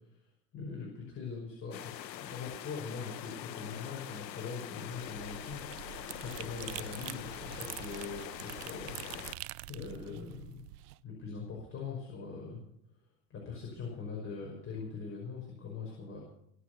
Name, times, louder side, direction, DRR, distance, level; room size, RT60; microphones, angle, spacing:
voice 1, 0.5-1.9 2.2-5.6 6.2-8.9 9.7-10.6 11.0-12.6 13.3-16.2, left 5 dB, 25° left, -1 dB, 5.7 m, -42 dB
sound 1, 1.7-9.3, left 11 dB, 90° left, 1.0 m, -44 dB
sound 2, 4.9-11.0, right 18 dB, 70° right, 0.8 m, -45 dB
23.0 x 8.2 x 6.8 m, 0.72 s
hypercardioid pair, 110°, 49 cm